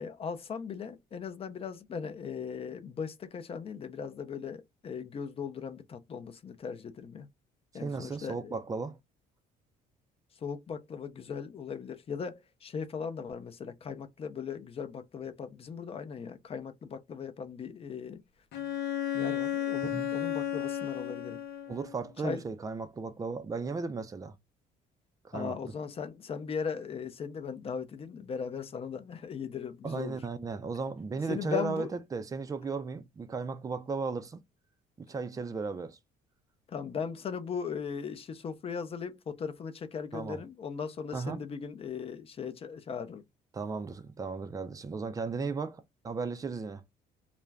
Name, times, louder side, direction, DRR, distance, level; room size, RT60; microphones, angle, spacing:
voice 1, 0.0-7.3 7.7-8.5 10.4-18.2 19.1-21.4 22.2-22.4 25.3-30.2 31.3-31.9 36.7-43.2, left 6 dB, 35° left, 0.5 m, -38 dB
voice 2, 7.7-9.0 19.9-20.1 21.7-24.4 25.2-25.7 29.8-34.4 35.0-36.0 40.1-40.4 41.1-41.4 43.5-46.8, right 4 dB, 20° right, 0.5 m, -35 dB
Bowed string instrument, 18.5-22.0, left 11 dB, 75° left, 0.6 m, -33 dB
2.4 x 2.2 x 3.3 m
cardioid pair, 110°, 17 cm